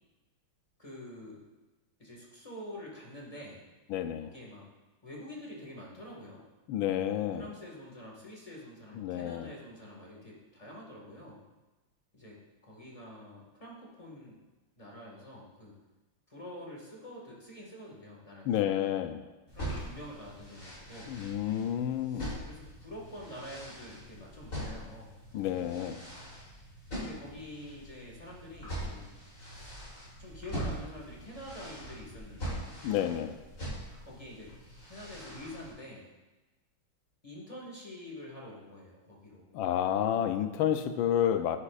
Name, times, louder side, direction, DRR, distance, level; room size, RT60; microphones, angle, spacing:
voice 1, 0.8-1.4 2.0-3.6 4.2-4.7 5.0-6.4 7.4-11.4 12.1-12.4 12.6-14.4 14.8-15.8 16.3-18.9 19.5-21.1 22.1-25.8 27.0-29.2 29.5-29.7 30.2-32.8 34.0-34.5 34.9-36.1 37.2-39.6, left 1 dB, 20° left, 1.6 m, -47 dB
voice 2, 3.9-4.3 6.7-7.5 9.0-9.5 18.4-19.2 21.1-22.4 25.3-26.0 32.8-33.4 39.5-41.6, left 10 dB, 80° left, 1.3 m, -30 dB
sound 1, 19.5-35.7, equal, 40° left, 3.6 m, -42 dB
10.0 x 8.4 x 2.4 m
omnidirectional pair, 2.2 m